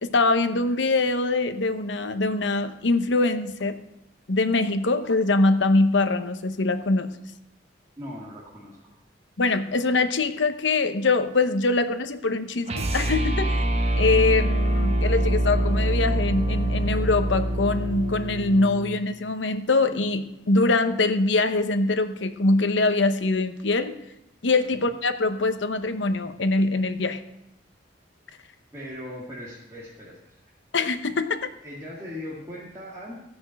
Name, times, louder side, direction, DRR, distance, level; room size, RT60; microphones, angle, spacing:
voice 1, 0.0-3.8 4.3-7.1 9.4-13.6 13.9-23.9 24.4-27.2 30.7-31.5, left 3 dB, 75° left, 10 dB, 0.9 m, -23 dB
voice 2, 8.0-9.0 24.7-24.8 28.7-30.4 31.6-33.1, left 1 dB, 15° right, -7 dB, 2.1 m, -39 dB
sound 1, 12.7-19.0, right 1 dB, 35° right, 1.1 m, -25 dB
14.5 x 6.1 x 7.6 m, 0.86 s
head